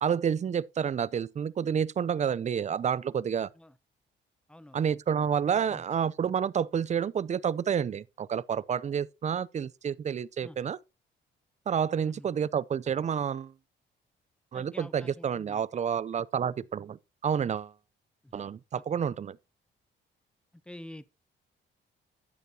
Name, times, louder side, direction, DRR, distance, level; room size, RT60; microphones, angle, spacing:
voice 1, 0.0-3.5 4.7-10.8 11.7-13.5 14.5-17.7 18.3-19.4, right 8 dB, 35° right, 0.5 m, -29 dB
voice 2, 4.5-4.8 5.7-5.8 10.4-10.6 12.0-12.3 14.5-15.6 18.2-18.3 18.7-18.8 20.7-21.1, left 1 dB, 5° left, 0.7 m, -47 dB
12.5 x 9.1 x 2.8 m
cardioid pair, 90°, 20 cm